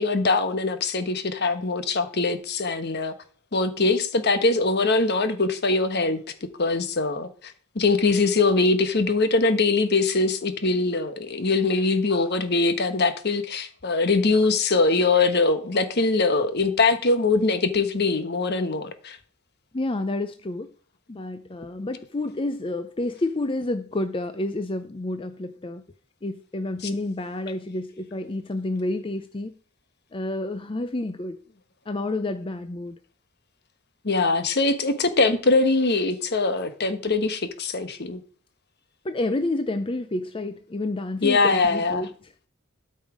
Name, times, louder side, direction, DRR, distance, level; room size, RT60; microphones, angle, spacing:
voice 1, 0.0-3.1 3.5-6.2 6.6-19.2 34.0-38.2 41.2-42.1, left 3 dB, 55° left, 1.3 m, -22 dB
voice 2, 19.7-20.7 21.1-25.8 26.2-29.5 30.1-31.4 31.9-33.0 39.0-42.3, left 2 dB, 25° left, 0.5 m, -29 dB
12.5 x 5.5 x 4.9 m
head